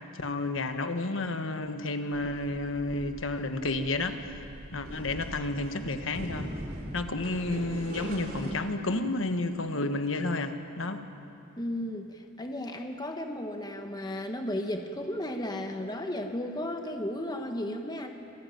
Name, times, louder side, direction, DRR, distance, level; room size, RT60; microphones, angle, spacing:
voice 1, 0.1-4.4 4.7-6.5 6.9-11.0, left 2 dB, 70° left, 8 dB, 1.4 m, -31 dB
sound 1, 2.1-8.5, right 1 dB, 45° right, 3.4 m, -41 dB
voice 2, 11.6-18.1, left 1 dB, 20° left, 4 dB, 1.3 m, -34 dB
26.5 x 15.0 x 9.3 m, 2.8 s
head